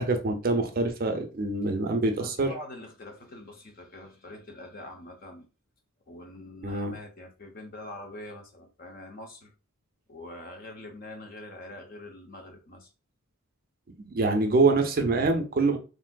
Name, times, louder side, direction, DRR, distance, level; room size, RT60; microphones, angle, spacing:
voice 1, 0.0-2.5 6.6-6.9 14.0-15.8, right 3 dB, 40° right, 0.4 m, -25 dB
voice 2, 2.1-5.5 6.1-9.5 10.1-12.9, left 1 dB, 40° left, 0.5 m, -44 dB
3.5 x 2.5 x 2.2 m
head